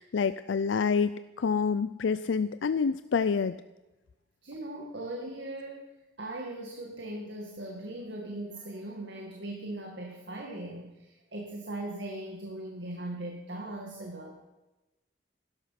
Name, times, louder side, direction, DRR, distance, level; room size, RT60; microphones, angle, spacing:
voice 1, 0.0-3.6, left 5 dB, 85° left, 13 dB, 0.4 m, -27 dB
voice 2, 4.4-5.9 6.2-14.4, right 1 dB, 70° right, 0 dB, 2.1 m, -39 dB
16.5 x 13.0 x 5.9 m, 1.1 s
head